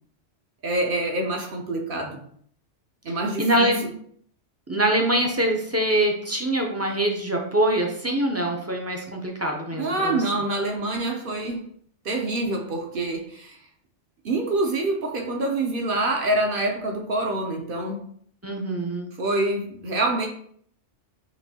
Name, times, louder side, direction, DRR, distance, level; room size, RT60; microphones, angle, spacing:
voice 1, 0.6-2.2 3.0-3.7 9.8-11.6 12.0-13.6 14.2-18.0 19.2-20.3, right 2 dB, 55° right, 2 dB, 0.7 m, -26 dB
voice 2, 3.4-3.8 4.7-10.2 18.4-19.1, right 1 dB, 20° right, 0 dB, 0.4 m, -24 dB
5.9 x 2.6 x 2.8 m, 0.63 s
omnidirectional pair, 1.2 m